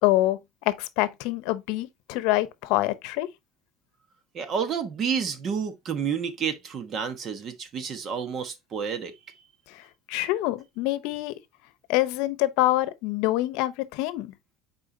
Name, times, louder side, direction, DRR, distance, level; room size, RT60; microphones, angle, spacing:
voice 1, 0.0-3.3 9.7-11.4 11.9-14.3, left 16 dB, 75° left, 0.8 m, -26 dB
voice 2, 4.3-9.1, right 7 dB, 40° right, 1.2 m, -30 dB
8.4 x 4.5 x 2.7 m
cardioid pair, 140°, 0 cm